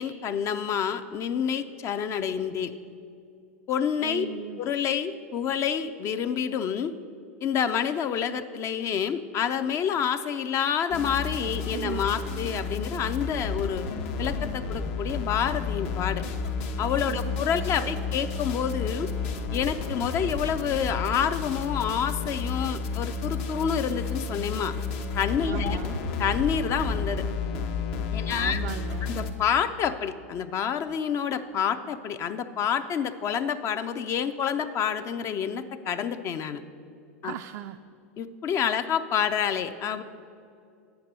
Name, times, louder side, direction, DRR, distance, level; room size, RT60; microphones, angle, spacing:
voice 1, 0.0-2.7 3.7-4.3 4.6-6.9 7.4-13.9 14.2-16.2 16.8-19.1 19.5-24.8 25.1-25.8 26.2-27.2 28.1-28.6 29.0-36.6 37.2-37.3 38.2-40.0, left 8 dB, 35° left, 10 dB, 0.5 m, -28 dB
voice 2, 4.0-4.6 11.7-12.0 17.1-17.7 17.9-18.0 25.5-26.0 28.2-29.1 37.2-37.8, right 12 dB, 55° right, 7 dB, 0.3 m, -37 dB
sound 1, 10.9-29.3, left 4 dB, 60° left, 0.9 m, -31 dB
9.1 x 5.9 x 6.6 m, 2.5 s
hypercardioid pair, 105°, 8 cm